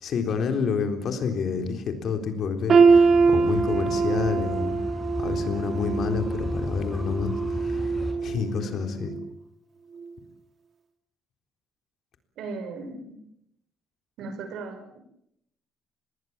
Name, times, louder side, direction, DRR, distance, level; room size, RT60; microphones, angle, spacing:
voice 1, 0.0-4.8 5.2-7.9 8.2-9.1, left 5 dB, 50° left, 7 dB, 3.8 m, -29 dB
sound 1, 2.7-8.6 9.0-9.3 10.0-10.1, right 4 dB, 40° right, 2.8 m, -23 dB
sound 2, 2.9-8.1, left 1 dB, ahead, 6.2 m, -35 dB
voice 2, 12.4-13.2 14.2-15.0, right 3 dB, 70° right, 8 dB, 6.1 m, -37 dB
26.0 x 20.5 x 7.4 m, 0.75 s
cardioid pair, 150°, 0 cm